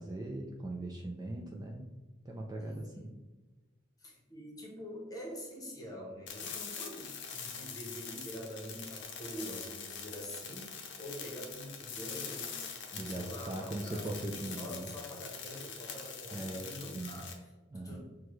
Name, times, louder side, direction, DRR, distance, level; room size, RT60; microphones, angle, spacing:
voice 1, 0.0-1.8 2.3-3.1 12.9-14.9 16.3-17.2 17.7-18.0, right 1 dB, 20° right, 1 dB, 0.3 m, -40 dB
voice 2, 2.6-3.2 4.0-12.6 12.9-18.0, equal, 20° left, -1 dB, 0.9 m, -46 dB
sound 1, 6.3-17.3, left 6 dB, 60° left, 0.6 m, -44 dB
6.1 x 2.3 x 3.0 m, 1.2 s
head